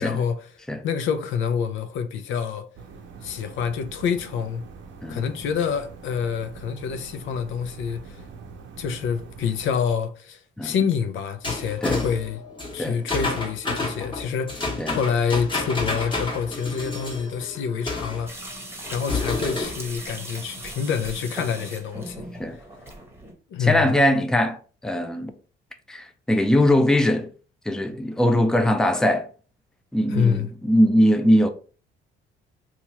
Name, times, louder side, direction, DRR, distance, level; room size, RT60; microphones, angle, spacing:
voice 1, 0.0-2.7 3.2-4.6 5.1-8.2 8.8-12.4 12.7-18.3 18.8-22.3 22.5-22.6 23.5-23.9 30.1-30.5, left 7 dB, 80° left, 0.5 m, -27 dB
sound 1, 2.8-9.8, right 5 dB, 70° right, 0.6 m, -43 dB
sound 2, 11.4-18.3 18.8-19.9, left 3 dB, 25° left, 1.3 m, -30 dB
sound 3, 18.3-23.3, right 1 dB, 10° right, 1.0 m, -38 dB
voice 2, 23.6-24.6 24.8-25.3 25.9-27.3 27.7-29.3 29.9-31.5, equal, 5° left, 0.4 m, -21 dB
2.9 x 2.4 x 4.1 m
cardioid pair, 90°, 20 cm